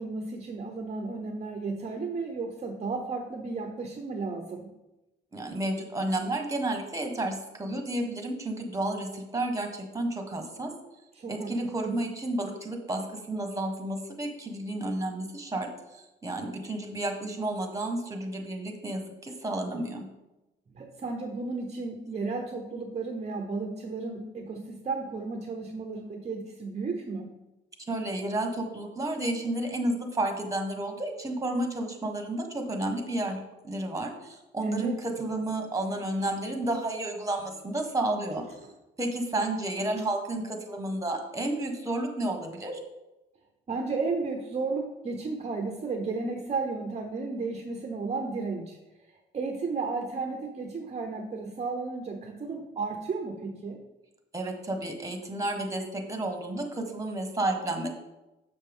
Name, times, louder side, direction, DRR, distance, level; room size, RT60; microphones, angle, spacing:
voice 1, 0.0-4.7 11.1-12.0 20.8-27.3 34.6-35.0 43.7-48.8 49.0-53.8, right 4 dB, 35° right, 3 dB, 0.8 m, -33 dB
voice 2, 5.3-10.7 11.3-15.7 15.9-20.0 27.8-38.4 39.0-42.8 54.3-57.9, right 1 dB, 15° right, 3 dB, 1.4 m, -31 dB
6.9 x 6.5 x 3.6 m, 1.0 s
cardioid pair, 90°, 20 cm